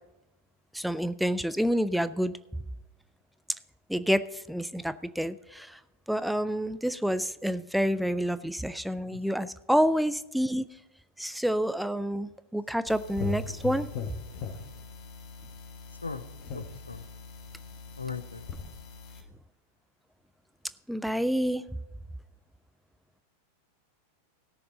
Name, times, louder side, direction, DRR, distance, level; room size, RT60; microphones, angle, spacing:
voice 1, 0.7-2.3 3.9-5.8 6.1-10.7 11.2-13.9 20.9-21.6, equal, ahead, 14 dB, 0.4 m, -28 dB
sound 1, 12.9-19.2, left 4 dB, 40° left, 1.3 m, -40 dB
voice 2, 16.5-17.0 18.0-18.5, left 5 dB, 80° left, 13 dB, 0.7 m, -38 dB
17.5 x 6.7 x 4.1 m, 0.95 s
figure-of-eight pair, 90°, 0 cm